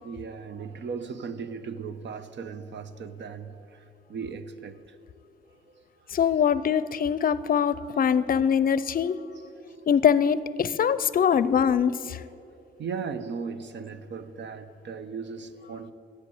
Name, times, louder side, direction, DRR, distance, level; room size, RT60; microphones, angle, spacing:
voice 1, 0.0-5.0 5.5-5.8 9.5-9.7 12.8-15.9, right 5 dB, 70° right, 11 dB, 0.9 m, -37 dB
voice 2, 6.1-9.2 9.9-12.2, left 8 dB, 50° left, 16 dB, 0.5 m, -23 dB
14.0 x 8.5 x 8.4 m, 2.7 s
cardioid pair, 110°, 19 cm